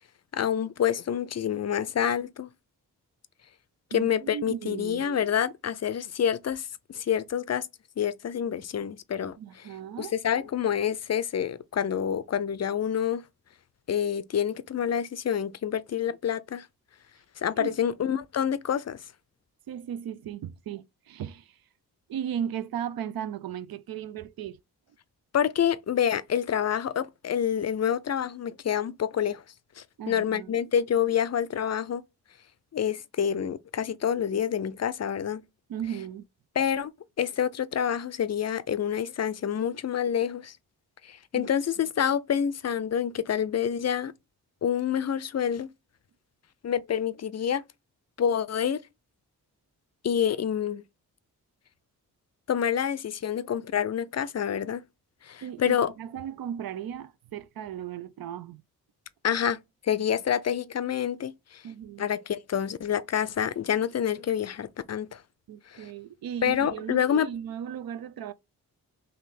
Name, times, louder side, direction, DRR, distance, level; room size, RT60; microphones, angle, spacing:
voice 1, 0.3-2.5 3.9-7.7 8.0-9.7 10.0-13.2 13.9-16.7 17.4-19.0 25.3-29.4 29.8-32.0 32.7-35.4 36.6-36.9 37.2-40.6 41.0-44.1 44.6-45.7 46.6-47.6 48.2-48.8 50.0-50.8 52.5-54.8 55.2-55.9 59.2-59.6 59.8-61.6 62.0-65.2 65.7-65.9 66.4-67.3, left 8 dB, 40° left, 0.5 m, -27 dB
voice 2, 3.9-5.1 9.4-10.1 17.5-17.8 19.7-21.6 22.1-24.6 30.0-30.6 35.7-36.2 41.3-41.5 55.4-58.6 61.6-62.0 65.5-68.3, right 9 dB, 60° right, 0.5 m, -36 dB
3.4 x 2.7 x 4.1 m
supercardioid pair, 40°, 40 cm